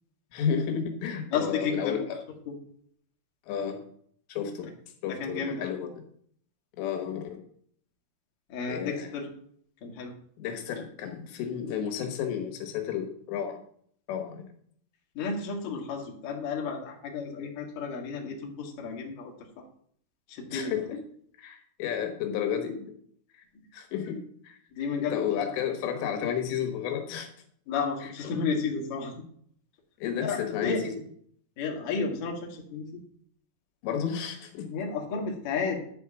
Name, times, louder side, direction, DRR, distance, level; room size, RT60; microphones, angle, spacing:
voice 1, 0.3-2.2 3.5-3.8 4.3-4.7 5.0-6.0 6.8-7.4 8.7-9.1 10.4-13.6 14.1-14.5 20.5-21.0 21.4-22.9 23.3-23.5 23.7-24.6 25.0-27.3 28.0-28.1 30.0-31.0 33.8-34.7, left 8 dB, 85° left, 5 dB, 3.5 m, -32 dB
voice 2, 1.3-2.0 2.5-2.6 5.1-5.7 8.5-9.3 9.8-10.1 15.2-19.3 20.3-20.7 24.7-25.5 27.7-29.1 30.2-30.8 31.6-32.9 34.7-35.8, left 5 dB, 60° left, 0 dB, 3.1 m, -32 dB
11.0 x 4.8 x 7.1 m, 0.63 s
omnidirectional pair, 4.9 m